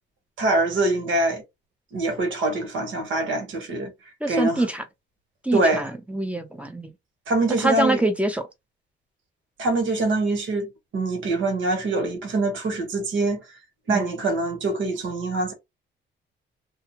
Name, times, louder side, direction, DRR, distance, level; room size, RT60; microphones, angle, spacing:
voice 1, 0.4-1.4 1.9-3.9 4.3-4.6 5.5-5.8 7.3-8.0 9.6-13.4 13.9-15.5, right 2 dB, 75° right, 1.3 m, -24 dB
voice 2, 4.2-4.9 5.4-6.9 7.5-8.5 13.9-14.1, right 2 dB, 5° right, 0.6 m, -25 dB
2.4 x 2.3 x 2.9 m
cardioid pair, 90°, 20 cm